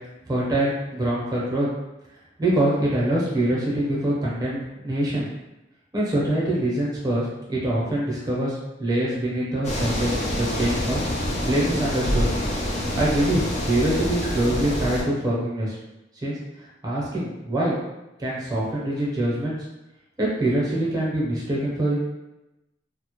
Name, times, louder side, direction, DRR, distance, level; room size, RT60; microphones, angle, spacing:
voice 1, 0.3-1.7 2.4-5.3 5.9-11.0 11.4-12.3 12.9-15.8 16.2-16.4 16.8-17.8 18.2-19.6 20.2-22.0, right 1 dB, 20° right, -6 dB, 0.6 m, -24 dB
sound 1, 9.6-15.0, left 1 dB, 35° left, 0.4 m, -26 dB
2.1 x 2.0 x 2.9 m, 0.96 s
head